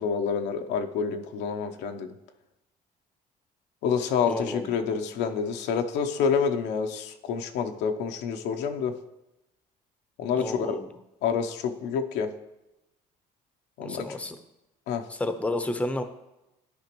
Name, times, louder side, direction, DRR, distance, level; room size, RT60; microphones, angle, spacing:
voice 1, 0.0-2.1 3.8-8.9 10.2-10.8 11.2-12.3 13.8-14.1 14.9-15.1, left 6 dB, 90° left, 6 dB, 0.7 m, -28 dB
voice 2, 4.3-4.7 10.4-10.9 13.8-14.4 15.1-16.0, left 1 dB, 10° left, 9 dB, 0.6 m, -31 dB
12.0 x 5.0 x 3.0 m, 0.93 s
cardioid pair, 110°, 17 cm